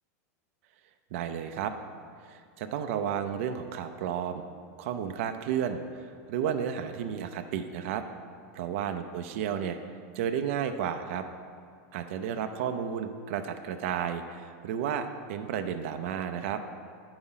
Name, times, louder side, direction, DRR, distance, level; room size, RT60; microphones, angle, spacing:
voice 1, 1.1-1.7 2.2-4.5 4.8-8.0 8.5-9.8 10.1-11.3 11.9-16.6, right 8 dB, 50° right, 7 dB, 0.5 m, -32 dB
9.9 x 4.8 x 5.6 m, 2.3 s
supercardioid pair, 175°, 9 cm